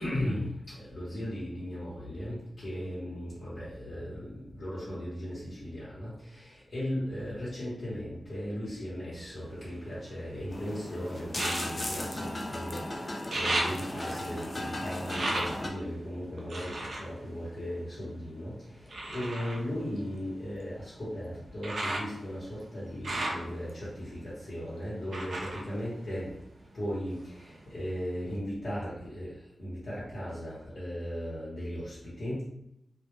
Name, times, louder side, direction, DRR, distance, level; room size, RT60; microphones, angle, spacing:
voice 1, 0.0-26.4 26.7-32.5, equal, 55° left, -10 dB, 0.9 m, -37 dB
sound 1, 9.1-10.5 11.3-12.8 13.1-18.3 18.9-26.7 27.1-27.9 28.4-28.5, right 2 dB, 60° right, 0.4 m, -37 dB
sound 2, 10.5-15.7, left 1 dB, 30° left, 0.3 m, -36 dB
2.1 x 2.1 x 3.0 m, 0.84 s
wide cardioid pair, 155°, 0 cm